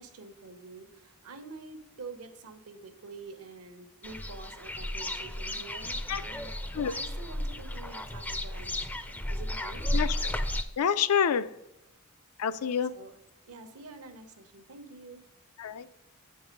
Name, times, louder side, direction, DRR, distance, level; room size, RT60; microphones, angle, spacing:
voice 1, 0.0-9.9 12.9-13.1 13.5-15.2, right 3 dB, 75° right, 7 dB, 1.0 m, -47 dB
sound 1, 4.0-10.6, left 1 dB, 10° left, 0.4 m, -33 dB
voice 2, 10.8-11.5 12.4-13.0 15.6-15.9, left 7 dB, 80° left, 14 dB, 0.4 m, -27 dB
7.3 x 4.7 x 5.3 m, 0.85 s
head